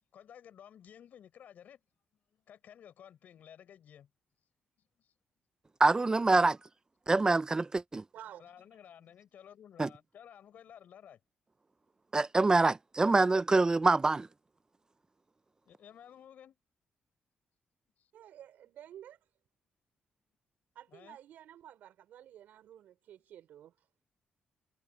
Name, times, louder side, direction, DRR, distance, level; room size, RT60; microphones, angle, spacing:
voice 1, 0.1-1.8 2.3-4.1 5.0-5.1 8.4-11.2 15.6-16.6 18.0-18.1 20.9-21.2, left 9 dB, 75° left, 6.7 m, -54 dB
voice 2, 5.8-6.6 7.1-8.0 9.8-9.9 12.1-14.3, right 3 dB, 25° right, 0.7 m, -25 dB
voice 3, 8.1-8.5 18.1-19.2 20.7-23.9, right 11 dB, 85° right, 5.6 m, -52 dB
cardioid pair, 85°, 3 cm